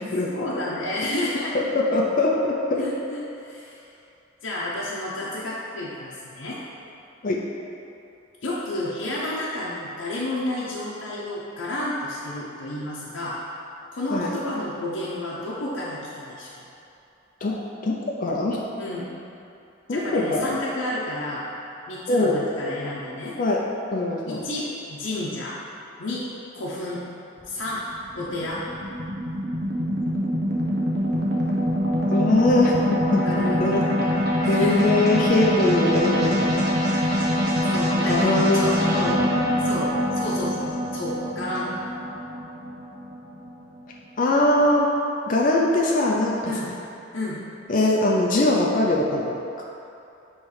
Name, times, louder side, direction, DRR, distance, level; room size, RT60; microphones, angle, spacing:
voice 1, 0.3-1.5 2.8-3.8 4.4-6.6 8.4-13.4 13.9-16.7 18.8-19.1 19.9-21.5 21.9-23.4 24.3-25.6 26.0-26.3 26.5-27.0 27.5-27.8 28.1-28.6 33.2-34.9 37.7-39.2 39.6-41.7 46.4-46.7 47.1-47.4, left 1 dB, 80° left, -7 dB, 0.7 m, -31 dB
voice 2, 1.5-2.8 7.2-7.4 14.1-14.3 17.4-18.6 19.9-20.6 22.1-22.4 23.4-23.6 23.9-24.4 32.1-32.8 33.1-33.8 34.5-36.7 38.1-38.7 44.2-44.9 45.3-46.5 47.7-49.6, left 2 dB, 45° left, -2 dB, 0.5 m, -22 dB
sound 1, 27.4-43.8, equal, 60° right, 0.9 m, -24 dB
6.4 x 3.1 x 4.7 m, 2.8 s
head